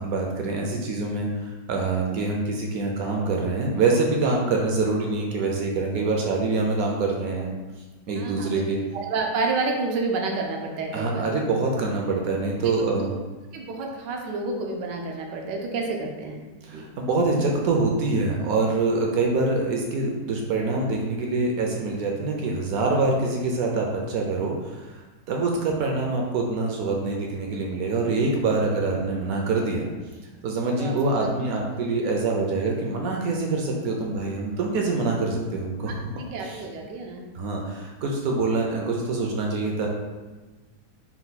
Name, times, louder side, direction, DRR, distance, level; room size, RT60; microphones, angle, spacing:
voice 1, 0.0-7.5 8.1-8.8 10.9-13.1 16.6-25.0 25.3-29.9 30.4-36.0 36.4-36.6 37.3-39.9, right 3 dB, 70° right, 0 dB, 0.9 m, -25 dB
voice 2, 8.2-8.6 9.0-11.3 12.6-13.1 13.5-16.3 16.7-16.9 30.8-31.3 36.2-37.2, right 3 dB, 90° right, 1 dB, 1.3 m, -29 dB
4.3 x 2.2 x 4.0 m, 1.3 s
omnidirectional pair, 1.8 m